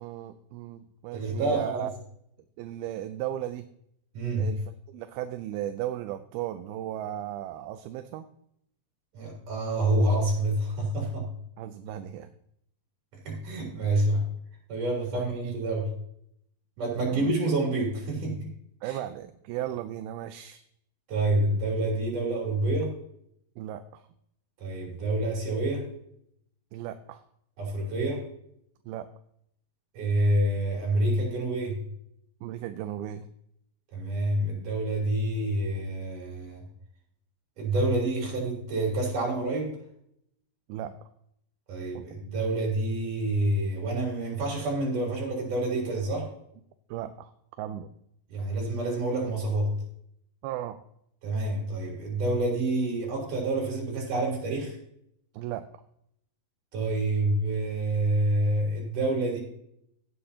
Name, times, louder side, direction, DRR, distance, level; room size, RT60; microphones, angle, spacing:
voice 1, 0.0-1.9 2.6-3.7 4.4-8.3 11.6-12.3 15.1-15.5 17.0-17.3 18.8-20.6 23.6-24.1 26.7-27.2 28.9-29.1 32.4-33.3 40.7-41.1 41.9-42.0 46.9-47.3 47.6-47.9 50.4-50.8 55.3-55.6, right 12 dB, 85° right, 10 dB, 2.4 m, -36 dB
voice 2, 1.1-1.9 4.1-4.5 9.1-11.3 13.2-14.3 14.7-15.9 16.8-18.5 18.8-19.0 21.1-22.9 24.6-25.9 27.6-28.3 29.9-31.8 33.9-36.6 37.6-39.8 41.7-46.3 48.3-49.7 51.2-54.8 56.7-59.4, right 2 dB, 55° right, -1 dB, 4.8 m, -27 dB
16.5 x 7.7 x 2.8 m, 0.73 s
omnidirectional pair, 4.4 m